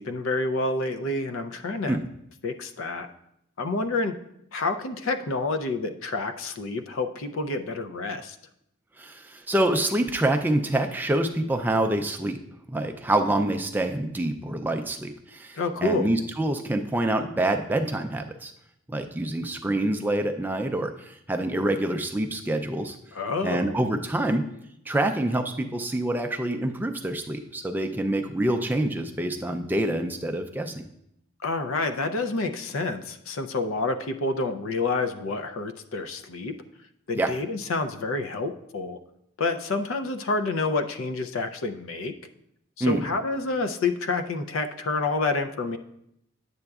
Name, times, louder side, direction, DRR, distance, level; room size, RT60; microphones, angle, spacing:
voice 1, 0.0-2.0 2.4-3.1 3.6-4.1 4.5-8.4 15.5-16.1 23.1-23.7 31.4-36.6 37.1-39.0 39.4-42.1 42.8-45.8, left 3 dB, 70° left, 7 dB, 0.5 m, -28 dB
voice 2, 9.0-12.4 12.7-18.5 18.9-23.0 23.4-24.4 24.9-30.8 37.2-37.3 42.8-43.0, right 1 dB, 10° right, 5 dB, 0.3 m, -26 dB
9.7 x 7.7 x 2.4 m, 0.78 s
head